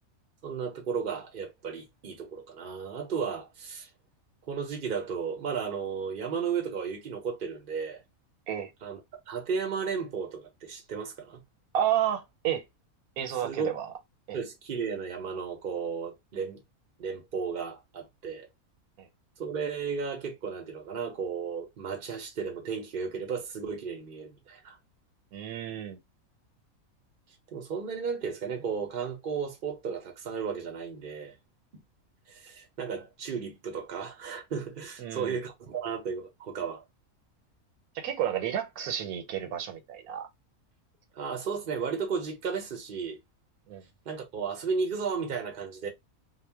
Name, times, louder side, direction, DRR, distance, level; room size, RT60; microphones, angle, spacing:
voice 1, 0.4-3.9 4.5-8.0 8.8-9.0 9.3-11.4 13.4-13.7 14.3-16.6 17.0-18.5 19.4-24.8 27.5-31.3 32.3-36.8 41.2-43.2 44.1-45.9, right 6 dB, 55° right, 0.6 m, -34 dB
voice 2, 11.7-12.6 13.2-13.9 14.3-14.4 19.0-19.1 25.3-26.0 35.0-35.4 37.9-40.3 43.7-43.8, right 10 dB, 80° right, 1.1 m, -31 dB
2.3 x 2.1 x 3.3 m
omnidirectional pair, 1.5 m